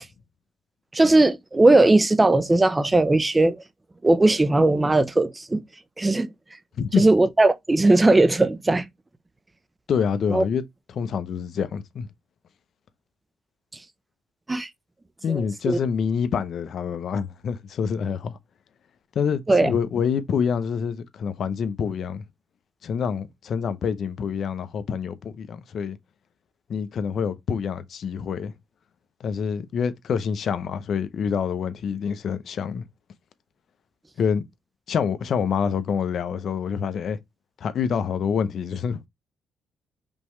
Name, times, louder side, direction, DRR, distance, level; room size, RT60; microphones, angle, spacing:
voice 1, 0.9-3.6 4.0-5.6 6.0-6.3 7.0-8.9 10.3-10.4 14.5-14.7 15.3-15.8 19.5-19.7, right 2 dB, 20° right, 0.6 m, -18 dB
voice 2, 6.8-7.1 9.9-10.6 10.9-12.1 15.2-18.4 19.1-22.2 22.8-26.0 26.7-28.5 29.2-32.8 34.2-34.4 34.9-37.2 37.6-39.1, left 7 dB, 60° left, 0.8 m, -26 dB
5.3 x 3.2 x 3.1 m
cardioid pair, 90°, 0 cm